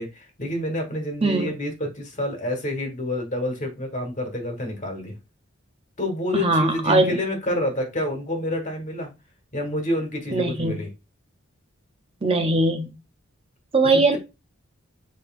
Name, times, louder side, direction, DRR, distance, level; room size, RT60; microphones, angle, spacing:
voice 1, 0.0-5.2 6.0-9.1 9.5-10.9 13.9-14.2, left 1 dB, 40° left, 3 dB, 1.5 m, -28 dB
voice 2, 6.3-7.2 10.3-10.8 12.2-12.9 13.7-14.2, right 2 dB, 30° right, 6 dB, 0.5 m, -20 dB
6.8 x 3.1 x 2.4 m, 0.26 s
head